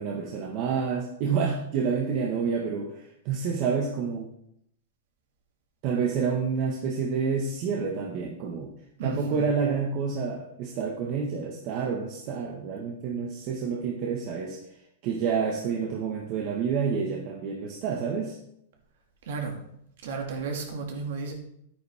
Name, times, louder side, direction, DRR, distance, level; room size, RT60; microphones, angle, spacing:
voice 1, 0.0-4.3 5.8-8.7 9.0-14.6 15.0-18.4, right 6 dB, 45° right, -1 dB, 1.5 m, -28 dB
voice 2, 9.0-9.5 19.2-19.6 20.0-21.3, right 4 dB, 70° right, 2 dB, 2.4 m, -33 dB
9.7 x 9.3 x 3.6 m, 0.74 s
hypercardioid pair, 135°, 0 cm